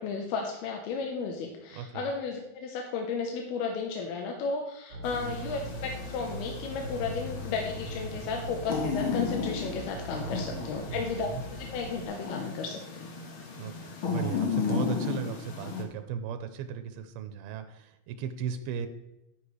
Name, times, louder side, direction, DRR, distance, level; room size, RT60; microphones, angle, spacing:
voice 1, 0.0-13.1, left 4 dB, 85° left, 2 dB, 2.9 m, -34 dB
voice 2, 1.7-2.1 10.9-11.4 13.6-13.7 14.1-18.9, right 7 dB, 90° right, 8 dB, 2.6 m, -36 dB
sound 1, 4.9-12.0, right 1 dB, 45° right, 3.2 m, -40 dB
sound 2, 5.0-15.8, left 5 dB, 65° left, 1.2 m, -35 dB
10.5 x 10.0 x 3.3 m, 0.91 s
omnidirectional pair, 4.4 m